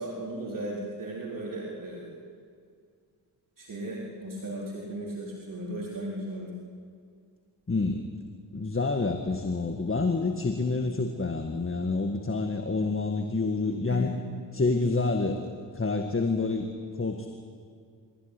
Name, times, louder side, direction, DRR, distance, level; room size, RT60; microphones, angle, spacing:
voice 1, 0.0-2.1 3.6-6.5 12.7-12.9 13.9-14.0, right 1 dB, 45° right, -4 dB, 4.3 m, -36 dB
voice 2, 7.7-8.1 8.5-14.1 14.5-17.3, left 3 dB, 25° left, 5 dB, 1.9 m, -28 dB
25.0 x 15.5 x 10.0 m, 2.2 s
cardioid pair, 65°, 45 cm